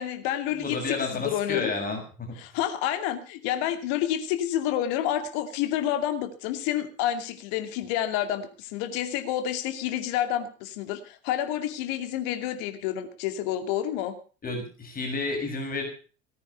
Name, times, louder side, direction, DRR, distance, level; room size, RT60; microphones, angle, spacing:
voice 1, 0.0-1.7 2.4-14.1, left 11 dB, 50° left, 8 dB, 2.5 m, -29 dB
voice 2, 0.6-2.3 14.4-15.8, left 3 dB, 25° left, 2 dB, 6.3 m, -31 dB
18.5 x 9.6 x 6.7 m, 0.39 s
figure-of-eight pair, 80°, 37 cm